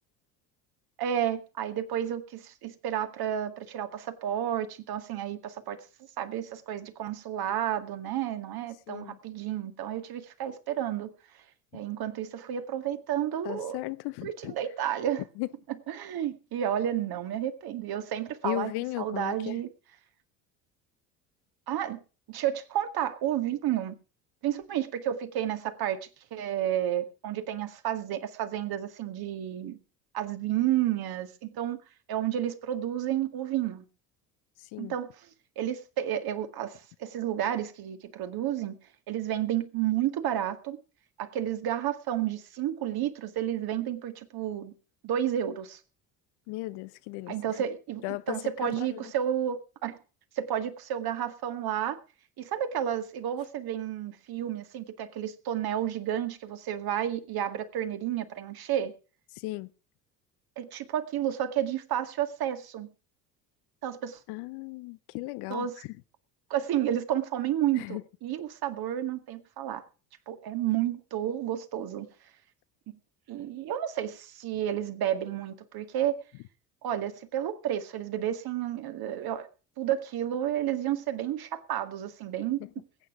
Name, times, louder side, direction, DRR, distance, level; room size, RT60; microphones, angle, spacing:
voice 1, 1.0-5.8 6.2-11.1 11.7-13.8 14.2-15.2 15.9-18.7 19.0-19.7 21.7-22.0 22.3-24.0 24.4-26.0 26.3-29.8 30.1-31.8 32.1-33.8 34.8-35.1 35.6-38.8 39.1-40.8 41.2-44.7 45.0-45.8 47.3-50.0 50.4-52.0 52.4-58.9 60.6-62.9 63.8-64.2 65.5-65.8 66.5-69.8 70.3-72.1 72.9-73.0 73.3-76.2 76.8-79.5 79.8-82.8, right 11 dB, 45° right, 2.1 m, -31 dB
voice 2, 8.9-9.2 13.4-14.5 15.4-15.5 18.4-19.6 34.6-34.9 46.5-47.4 48.0-49.1 59.3-59.7 64.3-65.9 67.8-68.0 82.6-82.7, left 20 dB, 50° left, 0.8 m, -36 dB
20.5 x 9.0 x 4.9 m
figure-of-eight pair, 60°, 50 cm